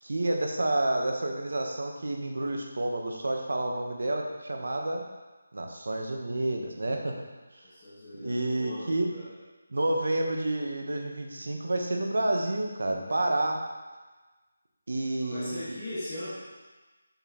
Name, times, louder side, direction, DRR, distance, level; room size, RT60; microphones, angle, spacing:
voice 1, 0.0-5.0 5.5-7.2 8.2-9.1 9.7-13.6 14.9-15.8, right 1 dB, 70° right, 2 dB, 1.1 m, -29 dB
voice 2, 7.6-9.3 15.2-16.3, left 1 dB, 25° left, -11 dB, 1.8 m, -39 dB
6.9 x 6.0 x 3.1 m, 1.2 s
figure-of-eight pair, 175°, 0 cm